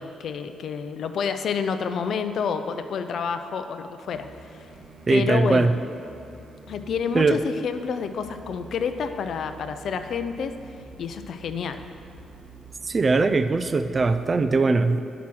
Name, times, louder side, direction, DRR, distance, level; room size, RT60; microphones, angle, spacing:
voice 1, 0.0-4.3 4.5-4.6 5.1-5.7 6.7-10.5 11.0-11.8, left 6 dB, 65° left, 9 dB, 0.5 m, -29 dB
sound 1, 4.0-14.5, right 3 dB, 50° right, 1.4 m, -47 dB
voice 2, 5.1-5.7 7.1-7.4 12.9-15.0, right 3 dB, 35° right, 10 dB, 0.4 m, -20 dB
10.0 x 5.9 x 6.1 m, 2.6 s
cardioid pair, 100°, 0 cm